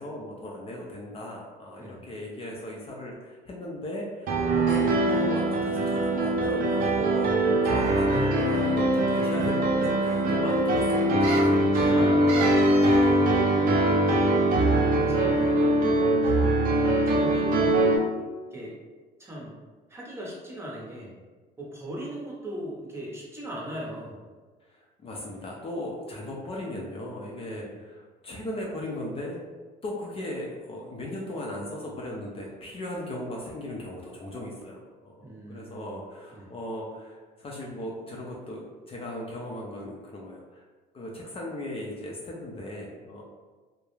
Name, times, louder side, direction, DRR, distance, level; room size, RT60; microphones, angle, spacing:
voice 1, 0.0-12.0 13.3-13.8 24.6-29.4 29.8-40.6 40.9-43.2, left 1 dB, 35° left, -2 dB, 0.5 m, -37 dB
Piano, 4.3-18.0, right 1 dB, 55° right, 0.4 m, -22 dB
sound 1, 7.8-8.3 9.2-9.3 9.5-9.6 11.2-11.6 12.3-13.0 13.3-13.4, right 3 dB, 80° right, 0.8 m, -34 dB
voice 2, 11.7-13.5 14.7-16.5 17.1-18.0 18.5-18.7 19.2-19.5 19.9-21.2 21.6-24.2 27.5-27.7 35.2-36.0 36.3-36.5, equal, 15° right, -4 dB, 0.7 m, -39 dB
2.3 x 2.0 x 3.0 m, 1.3 s
cardioid pair, 110°, 17 cm